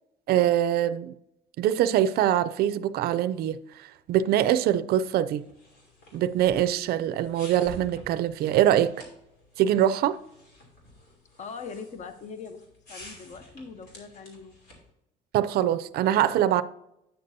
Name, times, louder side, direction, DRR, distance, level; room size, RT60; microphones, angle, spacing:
voice 1, 0.3-1.1 1.6-5.4 6.1-8.9 9.6-10.2 15.3-16.6, right 11 dB, 65° right, 0.4 m, -23 dB
sound 1, 5.3-14.9, left 1 dB, 80° left, 2.9 m, -50 dB
voice 2, 11.4-12.6 12.9-14.5, left 5 dB, 45° left, 0.8 m, -41 dB
9.2 x 6.6 x 2.7 m
cardioid pair, 110°, 17 cm